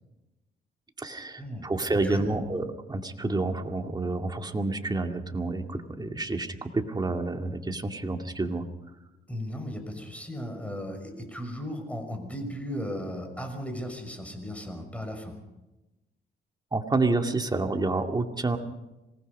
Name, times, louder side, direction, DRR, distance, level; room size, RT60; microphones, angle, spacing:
voice 1, 1.0-8.6 16.7-18.6, right 2 dB, 20° right, 4 dB, 2.3 m, -29 dB
voice 2, 9.3-15.4, equal, 5° left, 5 dB, 6.1 m, -36 dB
26.0 x 19.0 x 5.5 m, 1.0 s
cardioid pair, 90°, 20 cm